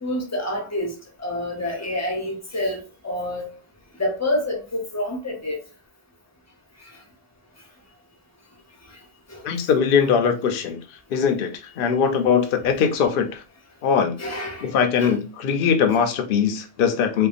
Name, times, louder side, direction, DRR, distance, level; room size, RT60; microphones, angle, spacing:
voice 1, 0.0-0.9 1.2-3.5 4.0-5.6 9.3-9.4 14.2-14.7 15.0-15.1, left 1 dB, 20° left, 0.5 m, -27 dB
voice 2, 9.4-10.8 11.1-11.5 11.8-13.4 13.8-14.1 14.6-17.3, left 7 dB, 60° left, 0.7 m, -21 dB
2.6 x 2.2 x 2.4 m
omnidirectional pair, 1.2 m